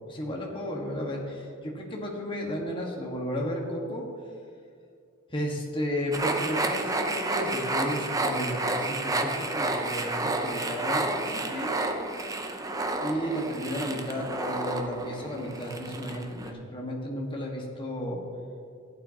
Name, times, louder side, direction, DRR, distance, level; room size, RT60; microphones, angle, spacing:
voice 1, 0.1-4.1 5.3-11.8 13.0-18.2, equal, 25° left, -2 dB, 1.5 m, -33 dB
sound 1, 6.1-16.5, right 2 dB, 15° right, 0.6 m, -30 dB
15.5 x 8.9 x 2.9 m, 2.3 s
head